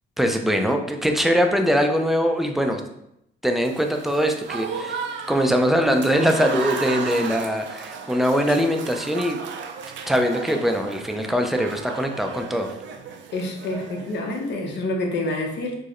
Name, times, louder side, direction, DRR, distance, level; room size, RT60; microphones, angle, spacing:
voice 1, 0.2-2.8 3.4-5.0 5.3-9.4 10.1-12.7, equal, ahead, 4 dB, 0.4 m, -22 dB
Applause / Crowd, 3.6-14.5, right 6 dB, 70° right, 0.4 m, -35 dB
voice 2, 13.3-15.8, left 2 dB, 60° left, 1 dB, 0.8 m, -27 dB
4.6 x 2.0 x 3.0 m, 0.79 s
cardioid pair, 90°, 20 cm